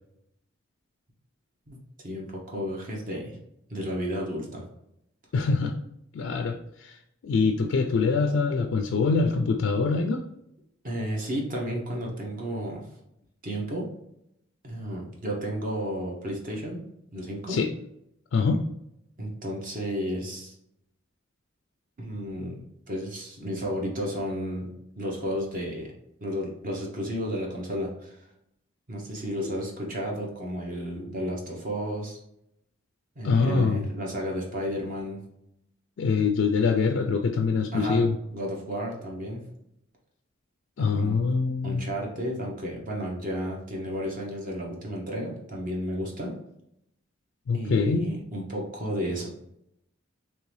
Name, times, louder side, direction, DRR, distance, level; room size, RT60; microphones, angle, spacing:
voice 1, 1.7-3.4 3.7-4.6 10.8-12.8 13.4-13.9 14.6-16.8 17.1-17.6 19.2-20.5 22.0-24.7 25.0-25.9 26.2-28.2 28.9-32.2 33.2-35.2 37.7-38.0 38.3-39.4 40.8-41.2 41.6-46.4 47.5-49.3, equal, 45° right, -1 dB, 0.8 m, -32 dB
voice 2, 5.3-5.7 6.1-7.0 7.2-10.2 17.5-17.7 18.3-18.6 29.4-29.6 33.2-33.9 36.0-38.1 40.8-41.8 47.5-48.1, left 4 dB, 75° left, 4 dB, 0.3 m, -24 dB
3.6 x 3.0 x 3.2 m, 0.78 s
head